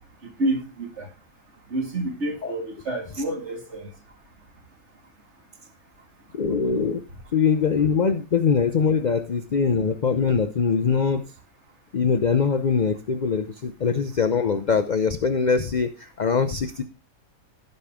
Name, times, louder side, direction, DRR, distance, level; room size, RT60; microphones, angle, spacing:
voice 1, 0.4-1.1 1.7-3.9, right 1 dB, 50° right, 2.3 m, -28 dB
voice 2, 6.3-7.0 7.3-11.2 11.9-16.8, left 5 dB, 55° left, 0.5 m, -22 dB
16.0 x 5.5 x 3.5 m
omnidirectional pair, 1.6 m